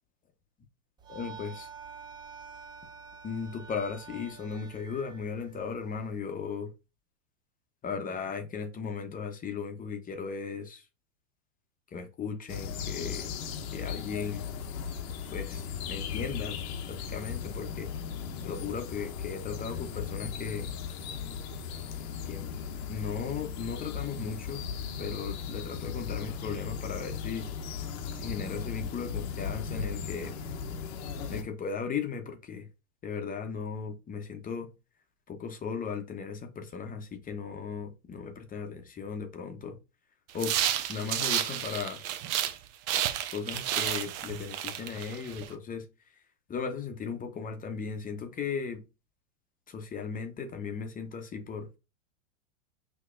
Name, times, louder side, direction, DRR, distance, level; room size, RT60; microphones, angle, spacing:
sound 1, 1.0-6.2, right 6 dB, 10° right, 0.4 m, -48 dB
voice 1, 1.1-1.7 3.2-6.7 7.8-10.9 11.9-13.3 13.7-14.5 15.3-16.6 16.9-17.9 18.4-20.7 22.2-22.6 22.9-24.6 25.0-27.5 28.1-30.3 31.3-32.7 33.0-34.7 35.3-39.8 40.3-40.5 40.9-42.0 43.3-45.9 46.5-48.8 49.7-51.7, left 6 dB, 20° left, 0.9 m, -36 dB
sound 2, 12.5-31.4, left 6 dB, 55° left, 1.0 m, -37 dB
sound 3, 40.3-42.6 42.9-45.5, right 11 dB, 40° right, 0.7 m, -31 dB
5.7 x 2.8 x 2.5 m
hypercardioid pair, 95°, 39 cm